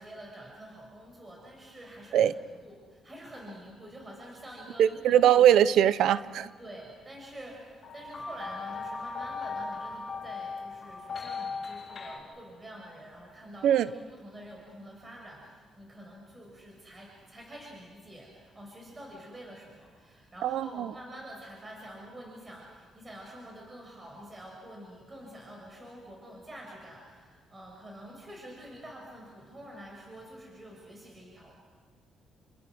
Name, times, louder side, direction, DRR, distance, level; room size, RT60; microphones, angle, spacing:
voice 1, 0.0-2.3 2.6-5.7 6.6-31.5, right 1 dB, 25° right, 0 dB, 6.4 m, -47 dB
voice 2, 4.8-6.5 13.6-13.9 20.4-20.9, right 10 dB, 80° right, 15 dB, 0.8 m, -22 dB
sound 1, 7.8-12.2, left 4 dB, 45° left, 5.8 m, -38 dB
29.5 x 25.5 x 6.3 m, 1.5 s
cardioid pair, 90°, 0 cm